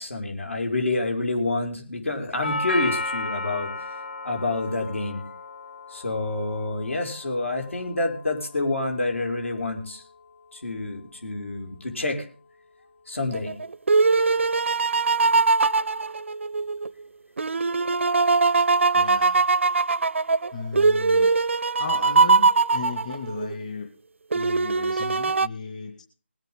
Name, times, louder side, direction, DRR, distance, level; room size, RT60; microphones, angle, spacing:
voice 1, 0.0-3.7 4.2-5.2 5.9-10.0 10.5-12.3 13.1-13.5, left 2 dB, 75° left, 3 dB, 5.5 m, -28 dB
Doorbell, 2.4-10.5, left 2 dB, 55° left, 0.9 m, -35 dB
sound 1, 13.3-16.9 17.4-23.6 24.3-25.5, right 4 dB, 70° right, 0.5 m, -21 dB
voice 2, 18.9-19.4 20.5-21.3 21.8-23.9 24.3-26.0, left 5 dB, 35° left, 3 dB, 2.3 m, -35 dB
20.5 x 9.1 x 3.8 m, 0.38 s
figure-of-eight pair, 160°, 7 cm